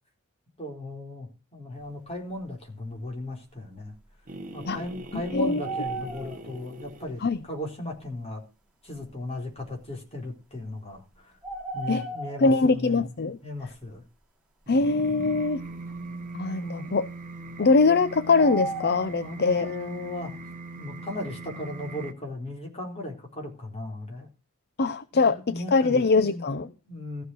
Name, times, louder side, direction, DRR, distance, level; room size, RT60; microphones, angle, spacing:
voice 1, 0.6-3.9 4.5-8.4 8.8-11.3 11.7-13.1 13.4-14.0 19.2-20.3 20.8-24.3 25.1-27.2, left 1 dB, 30° left, 4.0 m, -37 dB
sound 1, 3.8-3.9 4.6-6.6 7.3-7.4 9.0-9.1 11.4-12.6 18.4-19.2, right 3 dB, 5° right, 2.7 m, -35 dB
sound 2, 4.3-7.4 14.7-22.1, right 2 dB, 40° right, 1.4 m, -40 dB
voice 2, 12.4-13.4 14.7-15.6 16.3-17.1 17.6-19.7 24.8-26.7, left 3 dB, 45° left, 0.6 m, -22 dB
15.0 x 6.4 x 6.3 m
head